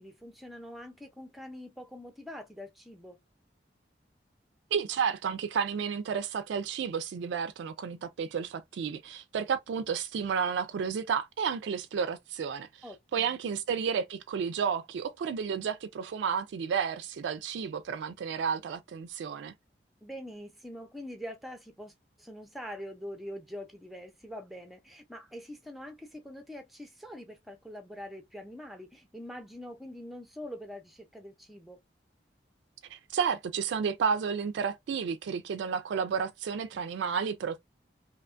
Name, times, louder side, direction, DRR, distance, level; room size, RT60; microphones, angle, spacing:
voice 1, 0.0-3.2 12.8-13.4 20.0-31.8, equal, ahead, 0.5 m, -44 dB
voice 2, 4.7-12.8 13.1-19.5 32.9-37.6, right 6 dB, 85° right, 0.3 m, -31 dB
2.7 x 2.2 x 2.5 m
head